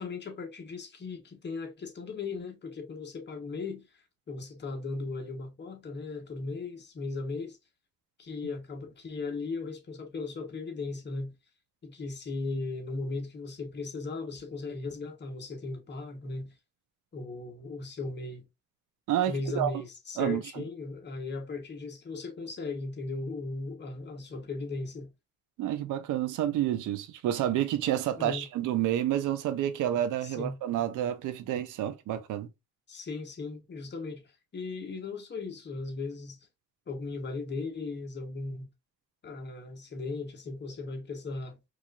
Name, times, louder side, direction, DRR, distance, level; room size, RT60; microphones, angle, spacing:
voice 1, 0.0-3.9 4.3-7.6 8.2-11.3 11.8-16.5 17.1-18.4 19.3-25.1 28.2-28.5 30.2-30.6 32.9-34.2 34.5-36.4 36.9-38.7 39.2-41.6, left 3 dB, 35° left, 1.1 m, -37 dB
voice 2, 19.1-19.7 20.2-20.4 25.6-32.5, right 11 dB, 85° right, 0.7 m, -29 dB
4.6 x 2.5 x 2.4 m
cardioid pair, 90°, 30 cm